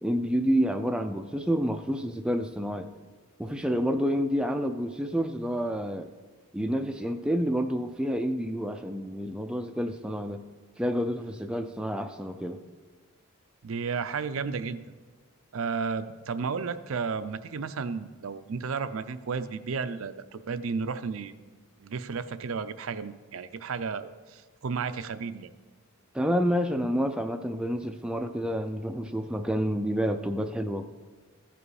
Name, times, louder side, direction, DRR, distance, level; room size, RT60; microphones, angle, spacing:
voice 1, 0.0-2.9 3.4-6.1 6.5-10.4 10.8-12.6 26.1-30.9, equal, 5° right, 6 dB, 0.3 m, -29 dB
voice 2, 13.6-15.0 15.5-25.5, right 5 dB, 65° right, 12 dB, 0.5 m, -33 dB
14.0 x 5.1 x 4.8 m, 1.3 s
head